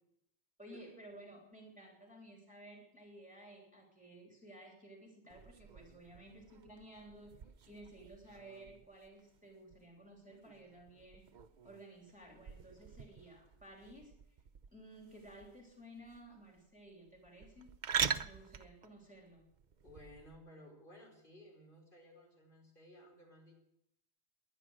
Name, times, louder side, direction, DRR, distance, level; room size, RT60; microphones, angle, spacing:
voice 1, 0.6-11.2 11.6-14.4 14.7-17.8 18.2-19.4, right 1 dB, 5° right, -1 dB, 3.3 m, -55 dB
sound 1, 5.3-20.4, right 7 dB, 50° right, 0.7 m, -44 dB
voice 2, 19.8-23.6, left 1 dB, 50° left, 0 dB, 5.0 m, -57 dB
19.5 x 10.5 x 6.4 m, 0.78 s
omnidirectional pair, 1.2 m